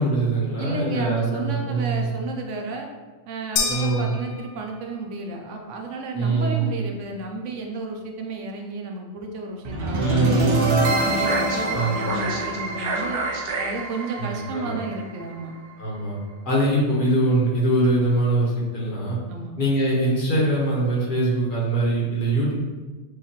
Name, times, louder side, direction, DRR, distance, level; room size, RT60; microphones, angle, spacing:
voice 1, 0.0-2.1 3.7-4.1 6.1-6.8 10.0-10.9 11.7-12.2 14.2-14.8 15.8-16.2 16.4-19.2 19.6-22.5, right 2 dB, 45° left, -6 dB, 1.4 m, -22 dB
voice 2, 0.6-2.9 3.3-10.5 10.9-13.2 13.6-15.5 19.3-19.6, right 3 dB, 85° right, 2 dB, 1.0 m, -32 dB
sound 1, 3.6-5.0, left 5 dB, 85° left, 1.0 m, -29 dB
sound 2, 9.6-15.7, right 1 dB, 60° right, 0.8 m, -26 dB
6.4 x 2.8 x 2.9 m, 1.3 s
omnidirectional pair, 1.2 m